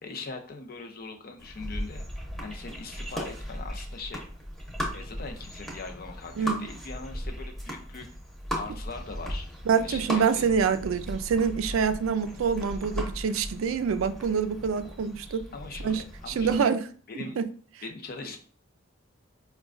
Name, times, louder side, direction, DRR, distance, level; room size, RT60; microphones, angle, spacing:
voice 1, 0.0-2.0 2.4-4.2 4.9-8.1 8.6-9.5 9.7-10.5 15.5-16.7 17.1-17.4 17.8-18.4, left 3 dB, 50° left, 3 dB, 0.6 m, -41 dB
sound 1, 1.4-16.6, equal, ahead, 0.8 m, -37 dB
voice 2, 9.7-15.4 15.8-16.9 17.1-17.4, right 6 dB, 90° right, 11 dB, 0.4 m, -26 dB
4.9 x 2.2 x 2.4 m, 0.43 s
head